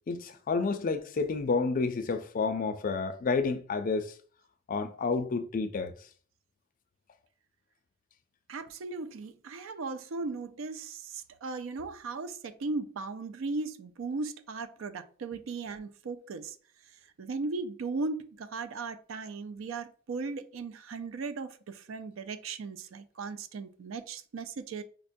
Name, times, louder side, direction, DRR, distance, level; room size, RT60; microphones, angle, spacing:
voice 1, 0.1-4.1 4.7-5.9, left 4 dB, 45° left, 0.4 m, -30 dB
voice 2, 8.5-16.6 17.2-24.8, right 3 dB, 80° right, 0.4 m, -37 dB
5.0 x 2.2 x 2.6 m
head